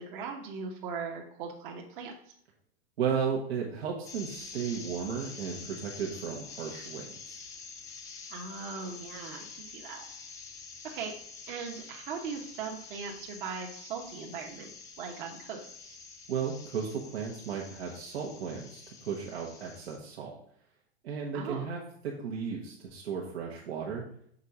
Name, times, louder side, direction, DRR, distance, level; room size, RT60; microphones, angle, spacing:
voice 1, 0.0-2.1 8.3-10.0 10.8-11.1 11.5-14.7 15.0-16.0 21.3-21.7, right 5 dB, 50° right, 0 dB, 1.1 m, -39 dB
voice 2, 3.0-7.4 16.3-20.3 21.0-24.0, right 6 dB, 85° right, -2 dB, 1.3 m, -34 dB
sound 1, 4.0-20.0, left 5 dB, 10° left, 0.4 m, -47 dB
6.5 x 4.2 x 4.8 m, 0.65 s
supercardioid pair, 160°, 31 cm